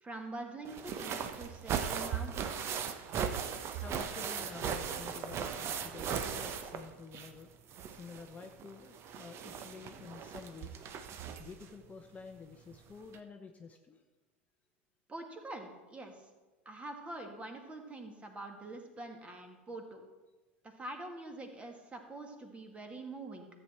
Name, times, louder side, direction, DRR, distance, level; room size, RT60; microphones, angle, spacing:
voice 1, 0.0-2.8 15.1-16.2 16.7-20.0 20.6-23.5, right 2 dB, 20° right, 4 dB, 1.9 m, -45 dB
sound 1, 0.6-7.4 7.7-11.6 12.7-12.8 13.1-13.2, right 7 dB, 40° right, 0.9 m, -38 dB
voice 2, 3.8-7.5 7.9-10.8 11.1-14.0, left 5 dB, 20° left, 5 dB, 0.8 m, -50 dB
13.5 x 8.1 x 4.4 m, 1.2 s
figure-of-eight pair, 80°, 7 cm